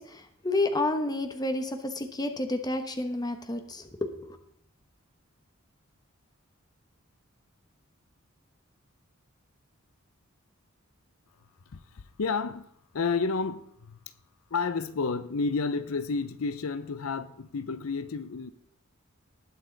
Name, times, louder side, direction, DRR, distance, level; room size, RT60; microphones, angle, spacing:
voice 1, 0.0-4.4, left 2 dB, 20° left, 1.0 m, -30 dB
voice 2, 11.7-12.7 12.9-14.0 14.5-18.5, left 4 dB, 85° left, 0.6 m, -31 dB
19.5 x 6.5 x 4.0 m
head